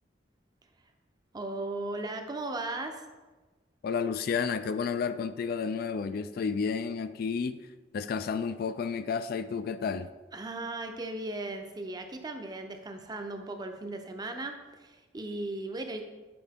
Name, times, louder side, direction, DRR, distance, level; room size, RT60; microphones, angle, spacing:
voice 1, 1.3-3.0 10.3-16.0, right 2 dB, 20° right, 5 dB, 0.6 m, -37 dB
voice 2, 3.8-7.7 7.9-10.1, left 5 dB, 55° left, 11 dB, 0.3 m, -31 dB
8.6 x 4.4 x 3.5 m, 1.2 s
head